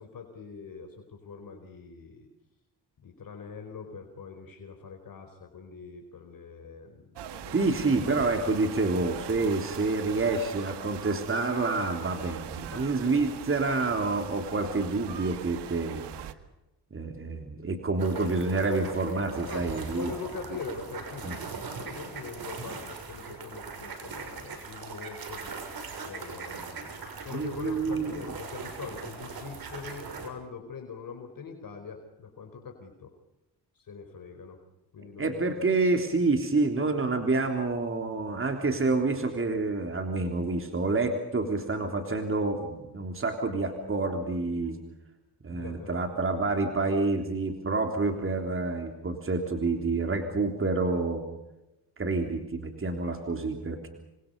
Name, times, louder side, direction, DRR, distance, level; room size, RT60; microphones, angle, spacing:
voice 1, 0.0-2.3 3.0-8.5 12.7-12.9 19.4-25.4 26.0-33.1 33.7-34.6 34.9-35.5 45.5-46.1, left 5 dB, 55° left, 5 dB, 4.5 m, -43 dB
sound 1, 7.1-16.3, right 10 dB, 85° right, 1.8 m, -41 dB
voice 2, 7.5-16.1 16.9-20.1 21.2-21.4 27.3-28.3 35.2-44.8 45.4-51.2 52.0-53.9, right 3 dB, 30° right, 4 dB, 3.5 m, -28 dB
sound 2, 18.0-30.3, right 5 dB, 60° right, 6.6 m, -40 dB
28.0 x 25.5 x 5.4 m, 0.97 s
cardioid pair, 90°, 40 cm